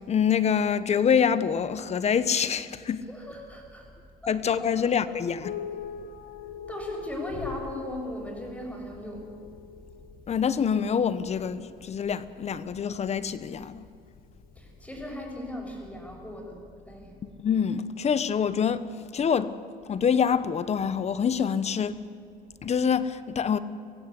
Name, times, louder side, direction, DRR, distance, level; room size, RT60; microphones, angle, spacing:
voice 1, 0.0-3.0 4.3-5.5 10.3-13.8 17.2-18.8 19.1-19.5 19.9-22.0 22.6-23.6, left 7 dB, 40° left, 1.1 m, -26 dB
voice 2, 3.1-3.9 4.2-4.4 5.1-5.2 6.7-9.3 14.5-16.6 16.9-17.1, left 1 dB, 10° left, 6.5 m, -37 dB
sound 1, 5.4-15.1, left 7 dB, 60° left, 1.2 m, -43 dB
24.0 x 16.0 x 8.4 m
cardioid pair, 110°, 17 cm